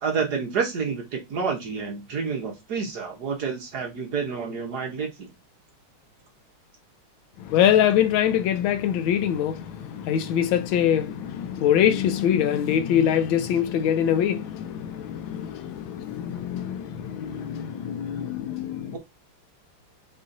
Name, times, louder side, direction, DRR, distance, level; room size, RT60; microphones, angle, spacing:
voice 1, 0.0-5.3 18.9-19.0, right 5 dB, 55° right, 1.5 m, -29 dB
voice 2, 7.4-19.0, left 9 dB, 75° left, 1.3 m, -24 dB
5.4 x 3.0 x 2.6 m
omnidirectional pair, 2.3 m